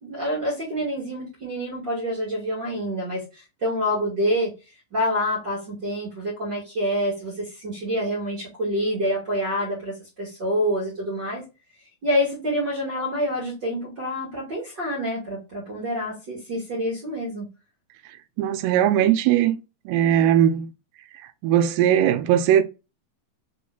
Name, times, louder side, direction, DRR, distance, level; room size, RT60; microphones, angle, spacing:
voice 1, 0.0-4.5 4.9-11.4 12.0-17.5, equal, 40° right, 1.6 m, -27 dB
voice 2, 18.4-19.6 19.9-20.7 21.4-22.6, right 10 dB, 90° right, 2.7 m, -19 dB
5.9 x 3.7 x 2.3 m
omnidirectional pair, 4.7 m